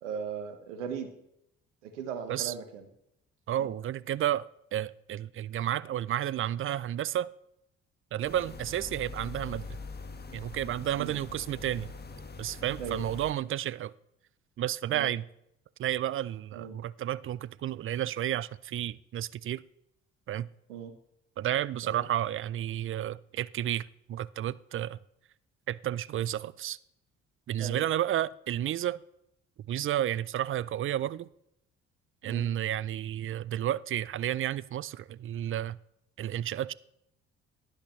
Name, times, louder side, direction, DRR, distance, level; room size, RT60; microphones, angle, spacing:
voice 1, 0.0-1.1 1.8-2.9 3.6-3.7 11.0-11.2 12.8-13.0 14.9-15.1 16.5-16.8 20.7-20.9 21.8-22.1 27.6-27.8 32.2-32.4, right 7 dB, 85° right, 1.2 m, -38 dB
voice 2, 3.5-4.5 4.7-7.3 8.1-9.8 10.3-11.9 12.4-13.9 14.6-15.3 15.8-19.6 20.3-20.5 21.4-25.0 25.7-26.8 27.5-29.0 29.7-31.3 32.2-35.8 36.2-36.7, right 12 dB, 35° right, 0.4 m, -31 dB
sound 1, 8.2-13.3, left 4 dB, 30° left, 1.4 m, -43 dB
11.5 x 10.5 x 3.1 m
hypercardioid pair, 50°, 35 cm